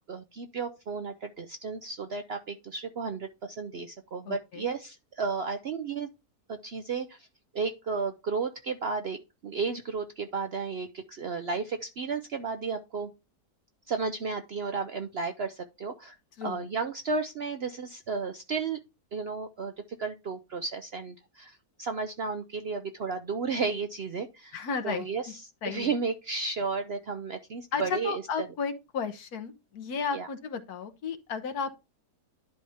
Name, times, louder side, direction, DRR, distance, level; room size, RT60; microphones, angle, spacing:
voice 1, 0.1-6.1 6.5-7.3 7.5-9.2 9.4-13.1 13.9-16.1 16.4-18.8 19.1-19.7 20.0-24.6 24.8-28.5 30.1-30.3, right 4 dB, 60° right, 0.7 m, -33 dB
voice 2, 4.3-4.7 16.4-16.7 24.5-25.1 25.6-26.0 27.7-31.7, left 6 dB, 75° left, 1.5 m, -33 dB
10.5 x 4.2 x 3.5 m
omnidirectional pair, 1.7 m